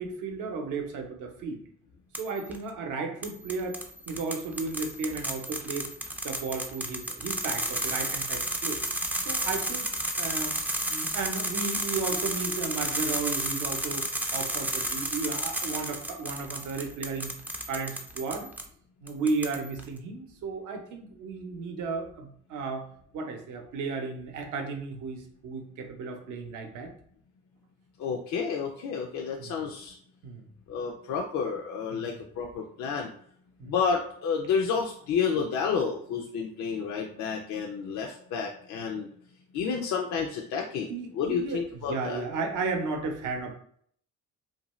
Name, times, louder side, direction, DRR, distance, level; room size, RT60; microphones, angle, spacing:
voice 1, 0.0-1.6 2.2-5.9 6.2-8.8 9.2-10.6 10.9-14.0 14.3-17.3 17.7-18.5 19.0-22.9 23.1-26.9 29.4-29.6 30.2-30.5 31.9-32.2 33.6-33.7 40.9-43.5, right 4 dB, 65° right, 4 dB, 0.7 m, -34 dB
sound 1, 2.1-2.6 3.2-18.7 19.1-19.8, right 1 dB, 5° right, 0.3 m, -32 dB
voice 2, 28.0-29.9 30.7-33.1 33.6-39.1 39.5-40.9 41.2-42.2, left 6 dB, 60° left, 1 dB, 0.5 m, -30 dB
2.6 x 2.2 x 3.0 m, 0.62 s
supercardioid pair, 85°, 33 cm